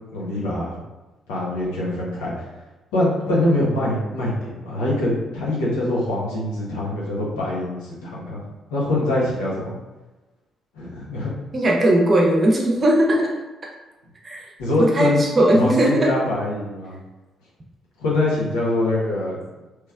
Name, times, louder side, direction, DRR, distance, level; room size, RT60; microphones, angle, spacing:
voice 1, 0.1-0.8 1.3-2.5 2.9-8.4 8.7-9.7 10.7-11.3 14.6-15.2 15.5-17.0 18.0-19.4, left 1 dB, 70° left, -6 dB, 1.0 m, -24 dB
voice 2, 11.5-13.3 14.2-14.5 14.8-16.1, right 1 dB, 35° right, -1 dB, 0.8 m, -18 dB
3.1 x 3.1 x 2.4 m, 1.1 s
figure-of-eight pair, 40°, 0 cm